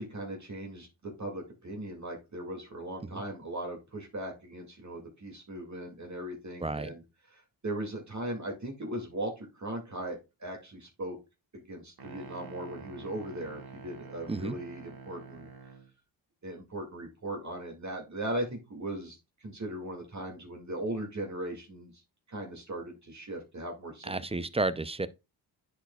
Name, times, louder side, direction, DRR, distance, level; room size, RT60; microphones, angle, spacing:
voice 1, 0.0-7.0 7.3-11.2 11.5-15.5 16.4-21.9 22.3-24.5, right 1 dB, 40° right, 2.2 m, -38 dB
voice 2, 6.6-6.9 14.3-14.6 24.0-25.1, right 2 dB, 15° right, 0.5 m, -32 dB
sound 1, 12.0-15.9, right 5 dB, 55° right, 1.8 m, -47 dB
10.0 x 4.7 x 2.3 m
cardioid pair, 60°, 44 cm